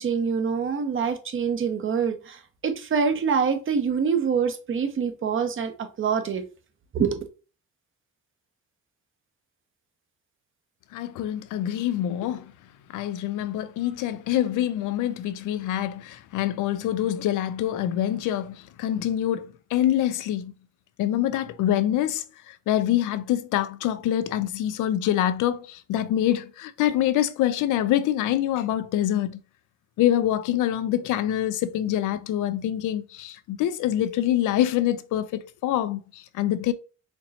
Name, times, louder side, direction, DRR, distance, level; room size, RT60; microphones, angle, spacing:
voice 1, 0.0-6.4 6.9-7.2, right 6 dB, 45° right, 0.8 m, -25 dB
voice 2, 10.9-12.5 12.9-20.5 21.0-29.4 30.0-36.7, left 12 dB, 85° left, 0.5 m, -25 dB
4.4 x 3.0 x 2.7 m
cardioid pair, 90°, 30 cm